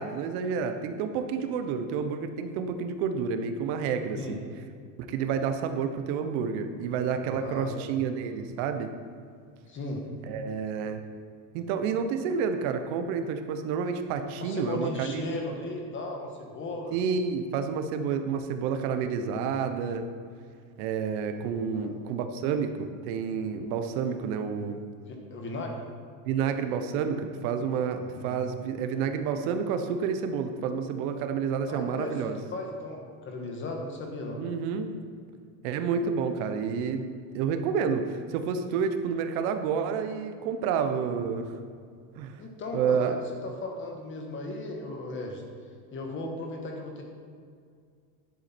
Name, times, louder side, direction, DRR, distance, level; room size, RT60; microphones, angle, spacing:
voice 1, 0.0-4.4 5.0-8.9 10.3-11.0 11.5-15.2 16.9-20.1 20.8-24.8 26.2-32.4 34.4-35.0 35.6-37.1 37.3-41.5 42.2-42.4 42.7-43.1, right 6 dB, 80° right, 7 dB, 1.1 m, -29 dB
voice 2, 7.2-8.1 9.7-10.0 14.4-17.0 21.2-21.4 21.7-22.0 25.1-25.9 28.0-28.4 31.7-34.4 42.4-43.2 43.4-45.4 45.9-47.0, left 2 dB, 25° left, 2 dB, 1.5 m, -36 dB
11.0 x 8.1 x 4.4 m, 2.2 s
cardioid pair, 165°, 42 cm